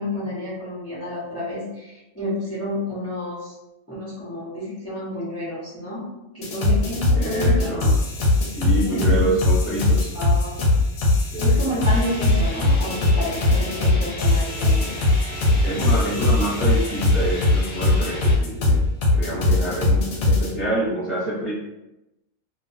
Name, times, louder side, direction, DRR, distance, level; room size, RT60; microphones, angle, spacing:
voice 1, 0.0-3.5 3.9-6.0 6.3-7.9 8.6-9.3 10.1-10.5 11.1-15.0, left 1 dB, 15° left, -9 dB, 0.7 m, -30 dB
sound 1, 6.4-20.5, left 2 dB, 85° left, 1.0 m, -20 dB
voice 2, 7.1-7.9 8.5-10.1 11.3-11.6 15.6-18.8 19.1-21.5, right 1 dB, 30° right, -11 dB, 0.8 m, -27 dB
sound 2, 11.8-18.3, left 1 dB, 50° left, 0.7 m, -35 dB
2.4 x 2.3 x 2.5 m, 0.94 s
omnidirectional pair, 1.4 m